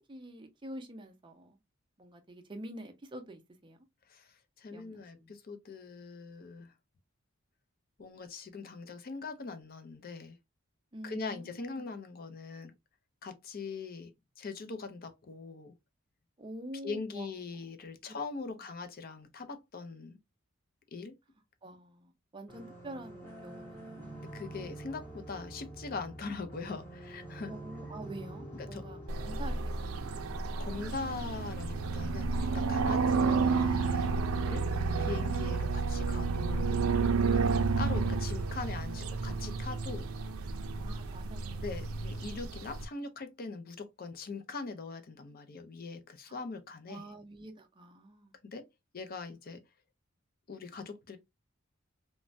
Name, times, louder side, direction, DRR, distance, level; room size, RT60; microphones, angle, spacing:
voice 1, 0.1-1.6 2.0-3.8 4.7-5.4 10.9-11.8 16.4-17.4 21.6-24.2 27.5-30.2 37.4-37.7 40.8-41.8 46.3-46.4 46.9-48.3, right 1 dB, 25° right, 0.5 m, -47 dB
voice 2, 4.6-6.7 8.0-10.4 11.0-12.7 13.2-14.1 14.4-15.7 16.8-20.2 20.9-21.1 24.2-27.5 28.6-28.8 30.6-34.1 34.5-34.7 35.0-36.8 37.2-37.4 37.8-40.1 41.6-47.0 48.5-48.7 48.9-49.6 50.5-51.2, left 4 dB, 45° left, 0.5 m, -41 dB
sound 1, 22.5-30.5, right 1 dB, 10° left, 1.0 m, -46 dB
sound 2, 29.1-42.9, right 4 dB, 85° right, 0.4 m, -31 dB
3.2 x 2.1 x 2.5 m
head